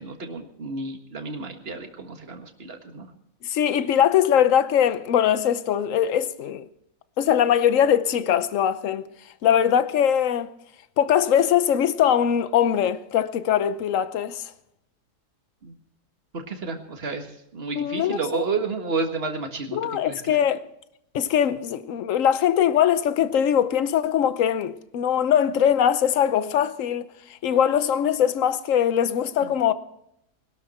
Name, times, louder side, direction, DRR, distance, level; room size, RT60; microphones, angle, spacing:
voice 1, 0.0-3.1 15.6-15.7 16.3-17.3 17.5-19.8 20.0-20.2 29.4-29.5, right 4 dB, 40° right, 1.9 m, -31 dB
voice 2, 3.5-6.7 7.2-9.1 9.4-10.5 11.0-14.4 17.8-18.4 19.7-20.6 21.1-27.0 27.4-29.7, left 9 dB, 60° left, 1.1 m, -21 dB
21.0 x 12.5 x 4.3 m
omnidirectional pair, 1.7 m